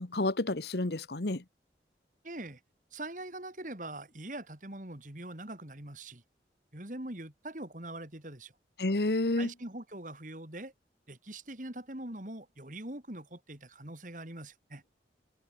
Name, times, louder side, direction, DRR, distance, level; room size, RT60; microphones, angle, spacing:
voice 1, 0.0-1.4 8.8-9.5, left 2 dB, 70° left, 1.3 m, -30 dB
voice 2, 2.2-2.6 2.9-6.2 6.7-8.5 9.4-10.7 11.1-14.8, right 1 dB, 45° right, 3.1 m, -43 dB
head